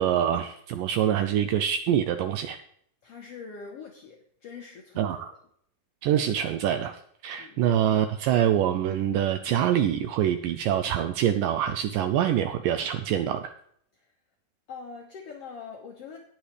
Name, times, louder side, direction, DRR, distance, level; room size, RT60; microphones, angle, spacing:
voice 1, 0.0-2.6 5.0-5.3 6.0-13.5, right 10 dB, 85° right, 9 dB, 2.0 m, -25 dB
voice 2, 3.0-5.4 7.4-7.6 13.9-14.1 14.7-16.2, left 5 dB, 70° left, 1 dB, 1.4 m, -43 dB
18.0 x 7.2 x 3.3 m, 0.65 s
omnidirectional pair, 4.4 m